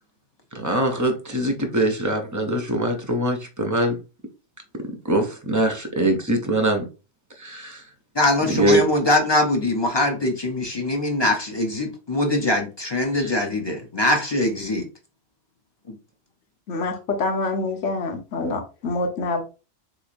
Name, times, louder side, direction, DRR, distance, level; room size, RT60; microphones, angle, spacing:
voice 1, 0.5-4.0 5.1-6.9 7.4-7.8 8.5-8.8 13.1-13.3, right 1 dB, 30° right, 0.3 m, -22 dB
voice 2, 8.1-14.9 15.9-16.0, left 1 dB, 30° left, 0.6 m, -22 dB
voice 3, 16.7-19.4, left 3 dB, 85° left, 1.2 m, -26 dB
3.8 x 3.1 x 2.5 m
omnidirectional pair, 1.2 m